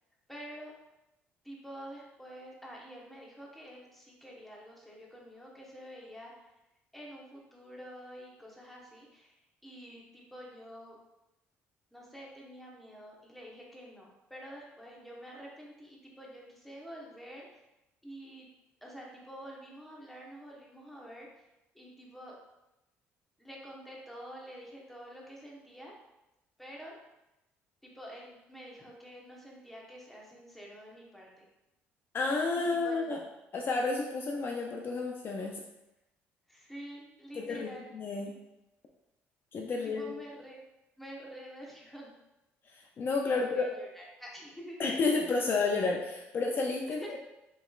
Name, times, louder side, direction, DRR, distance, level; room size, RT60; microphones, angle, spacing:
voice 1, 0.3-0.7 1.4-6.5 6.9-9.3 9.6-11.0 11.9-17.6 18.0-18.5 18.8-21.5 21.7-22.4 23.4-25.9 26.6-26.9 27.8-31.5 32.6-33.2 36.5-37.9 38.3-38.4 39.7-40.5 41.0-42.1 43.3-44.8 46.9-47.2, equal, 5° left, -3 dB, 1.1 m, -48 dB
voice 2, 32.1-33.2 33.5-35.6 37.3-38.3 39.5-40.1 42.7-43.7 44.8-47.2, left 3 dB, 45° left, 1 dB, 0.5 m, -31 dB
5.1 x 3.0 x 2.4 m, 0.93 s
supercardioid pair, 85°, 5 cm